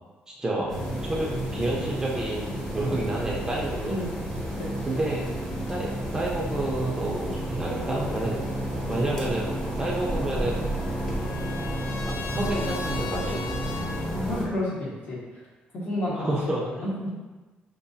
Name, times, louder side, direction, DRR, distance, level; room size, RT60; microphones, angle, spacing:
voice 1, 0.3-0.7 1.0-4.0 4.9-5.3 5.7-8.4 8.9-9.5 9.8-10.6 12.1-13.4 16.1-16.6, right 1 dB, 15° right, -4 dB, 0.6 m, -29 dB
sound 1, 0.7-14.4, right 1 dB, 15° left, 0.9 m, -31 dB
voice 2, 3.8-4.2 4.6-4.9 14.1-15.5 15.7-17.1, left 1 dB, 55° left, -6 dB, 1.4 m, -31 dB
Trumpet, 10.3-14.1, left 5 dB, 90° left, 0.4 m, -39 dB
5.6 x 2.6 x 2.7 m, 1.2 s
cardioid pair, 135°, 4 cm